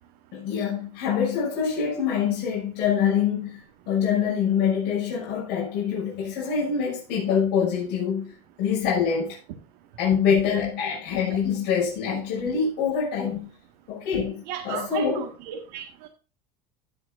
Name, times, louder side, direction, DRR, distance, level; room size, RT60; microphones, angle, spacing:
voice 1, 0.3-9.4 10.0-13.5 13.9-15.2, left 7 dB, 60° left, 6.7 m, -25 dB
voice 2, 14.5-16.1, right 10 dB, 75° right, 2.2 m, -34 dB
19.0 x 6.7 x 2.7 m
supercardioid pair, 130°, 21 cm